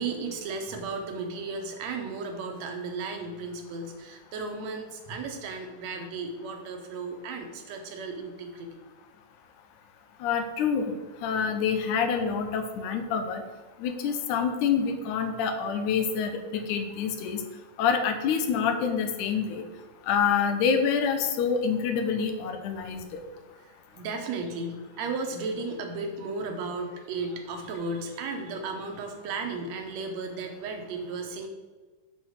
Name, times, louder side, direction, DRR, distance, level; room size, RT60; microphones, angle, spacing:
voice 1, 0.0-8.8 23.6-31.5, right 3 dB, 70° right, 4 dB, 2.2 m, -35 dB
voice 2, 10.2-10.9 11.2-13.4 13.8-17.4 17.8-19.6 20.1-23.2, left 6 dB, 85° left, 7 dB, 2.3 m, -27 dB
8.0 x 4.2 x 6.5 m, 1.4 s
omnidirectional pair, 3.5 m